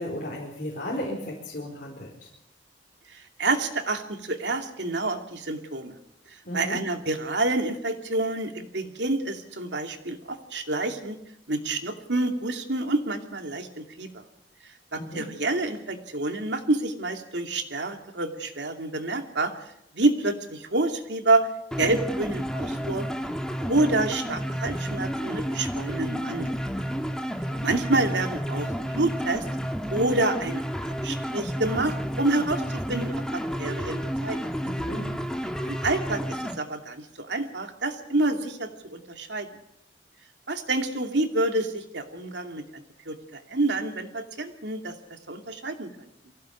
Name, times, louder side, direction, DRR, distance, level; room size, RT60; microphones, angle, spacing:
voice 1, 0.0-2.3 6.5-6.8 14.9-15.2 34.6-35.2, left 1 dB, 50° left, -3 dB, 4.6 m, -34 dB
voice 2, 3.1-6.0 6.3-11.2 11.5-14.1 14.9-19.5 19.9-21.5 21.8-23.1 23.6-26.6 27.6-29.5 29.9-34.4 35.6-39.5 40.5-45.9, right 2 dB, 75° right, 5 dB, 2.6 m, -28 dB
sound 1, 21.7-36.6, equal, 5° left, 1.5 m, -31 dB
23.5 x 16.0 x 8.5 m, 0.81 s
head